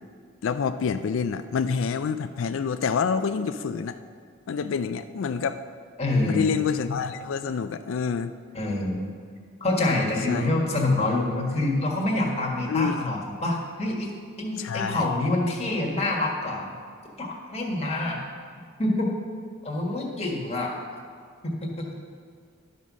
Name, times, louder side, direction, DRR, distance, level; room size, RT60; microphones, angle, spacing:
voice 1, 0.4-4.0 4.5-5.6 6.3-8.3 10.3-10.5 12.7-13.0 14.6-15.1, left 6 dB, 75° left, 10 dB, 0.4 m, -27 dB
voice 2, 6.0-6.5 8.5-9.1 9.6-14.1 14.4-16.7 17.2-18.2 18.8-19.1 19.6-20.7 21.4-21.8, left 2 dB, 30° left, -1 dB, 1.6 m, -26 dB
12.0 x 5.5 x 6.2 m, 2.1 s
head